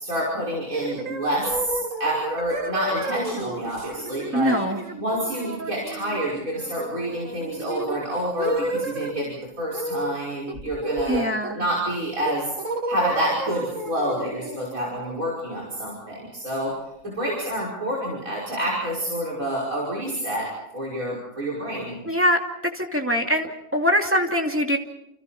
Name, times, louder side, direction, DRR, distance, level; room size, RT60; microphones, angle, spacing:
voice 1, 0.0-4.5 5.0-11.3 11.5-12.5 12.9-16.7 17.0-22.0, right 1 dB, 85° right, -4 dB, 6.0 m, -28 dB
sound 1, 0.7-9.3 9.7-10.2 10.5-11.7 12.2-15.9, right 2 dB, 70° right, 2.4 m, -32 dB
voice 2, 4.3-4.8 11.1-11.6 22.1-22.4 22.7-24.8, equal, 10° right, 2 dB, 2.5 m, -22 dB
30.0 x 28.5 x 4.3 m, 0.81 s
omnidirectional pair, 1.4 m